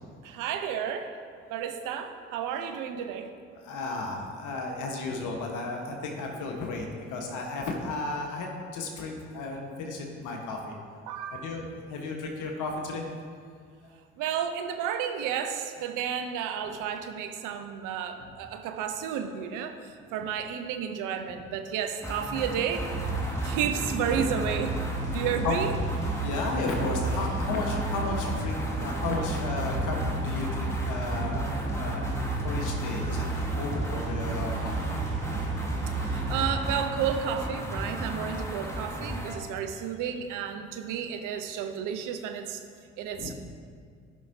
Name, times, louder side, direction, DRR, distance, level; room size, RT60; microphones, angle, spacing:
voice 1, 0.2-1.1 1.5-3.3 11.1-11.6 14.2-19.8 20.1-22.9 23.4-24.8 25.1-25.7 36.0-42.6 43.0-43.3, right 8 dB, 65° right, 7 dB, 0.8 m, -32 dB
voice 2, 3.6-10.7 11.4-13.0 23.3-23.6 24.1-24.3 25.4-25.6 26.2-31.5 31.7-32.0 32.4-33.2 33.6-34.7 36.2-36.3 43.2-43.3, left 3 dB, 60° left, 1 dB, 1.3 m, -33 dB
sound 1, 22.0-39.4, equal, 10° left, 1.4 m, -34 dB
sound 2, 22.8-36.7, right 3 dB, 35° right, 2.2 m, -33 dB
14.0 x 5.5 x 2.7 m, 2.1 s
hypercardioid pair, 50°, 34 cm